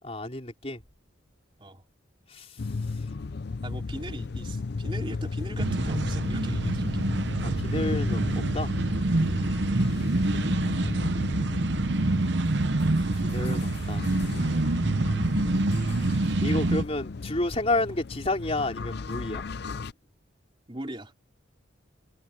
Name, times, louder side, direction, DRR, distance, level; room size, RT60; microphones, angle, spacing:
voice 1, 0.0-0.8 2.3-2.6 7.4-8.2 8.5-8.7 10.9-11.6 13.2-14.0 16.4-19.4, left 2 dB, 30° left, 4.1 m, -30 dB
sound 1, 2.6-19.9, left 4 dB, 55° left, 0.5 m, -34 dB
voice 2, 3.6-6.8 20.7-21.1, right 1 dB, 25° right, 3.4 m, -40 dB
sound 2, 5.6-16.8, right 2 dB, 55° right, 0.8 m, -26 dB
head